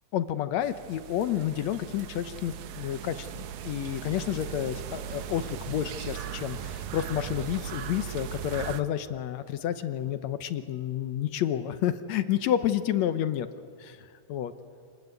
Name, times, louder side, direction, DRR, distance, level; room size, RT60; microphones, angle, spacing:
voice 1, 0.1-13.5 13.8-14.0 14.3-14.5, left 11 dB, 70° left, 11 dB, 1.9 m, -30 dB
sound 1, 0.6-8.8, right 10 dB, 70° right, 2.3 m, -38 dB
28.0 x 20.0 x 9.5 m, 2.2 s
omnidirectional pair, 3.5 m